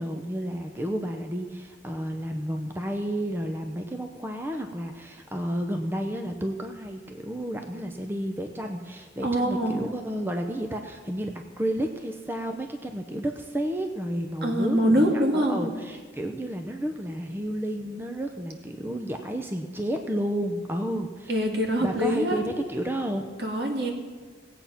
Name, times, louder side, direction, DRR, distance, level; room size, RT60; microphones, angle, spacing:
voice 1, 0.0-15.1 15.3-21.4 21.8-23.3, right 1 dB, 10° right, 4 dB, 0.7 m, -31 dB
voice 2, 9.2-9.8 14.4-15.7 21.3-22.4 23.4-23.9, equal, 60° right, 1 dB, 2.2 m, -24 dB
17.5 x 8.4 x 5.8 m, 1.5 s
head